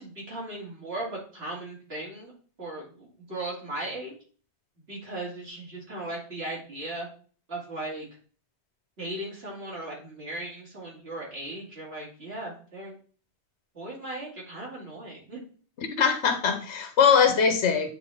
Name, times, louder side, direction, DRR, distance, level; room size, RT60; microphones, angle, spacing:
voice 1, 0.0-2.3 2.6-4.1 4.9-7.1 7.5-8.1 9.0-12.9 13.7-15.4, right 2 dB, 60° right, -4 dB, 2.7 m, -37 dB
voice 2, 15.8-17.9, left 6 dB, 80° left, 6 dB, 1.2 m, -22 dB
8.4 x 4.0 x 3.5 m, 0.42 s
omnidirectional pair, 1.2 m